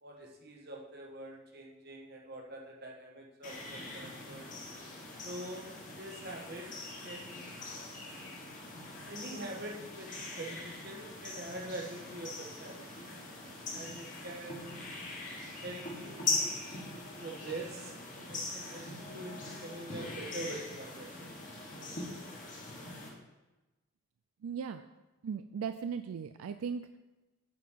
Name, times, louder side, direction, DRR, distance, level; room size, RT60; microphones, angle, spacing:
voice 1, 0.0-4.5 5.2-5.7 6.0-6.7 7.0-7.6 9.0-13.1 13.7-15.0 15.6-16.5 17.2-21.3 21.8-22.3, right 1 dB, 50° right, -1 dB, 1.3 m, -45 dB
sound 1, 3.4-23.1, left 2 dB, 35° left, 1.5 m, -41 dB
voice 2, 24.4-24.8 25.2-27.0, right 6 dB, 80° right, 9 dB, 0.3 m, -37 dB
9.2 x 4.2 x 5.7 m, 1.1 s
head